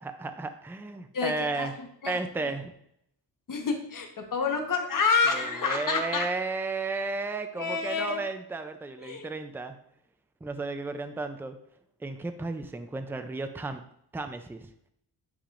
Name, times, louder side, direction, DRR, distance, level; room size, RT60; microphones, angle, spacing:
voice 1, 0.0-1.7 2.1-2.7 5.3-9.8 10.4-11.6 12.0-13.8 14.1-14.7, right 3 dB, 5° right, 8 dB, 0.4 m, -33 dB
voice 2, 1.1-1.7 2.0-2.5 3.5-6.3 7.5-8.2 9.0-9.3, left 5 dB, 50° left, 3 dB, 1.2 m, -28 dB
10.0 x 4.9 x 2.5 m, 0.73 s
wide cardioid pair, 150°, 43 cm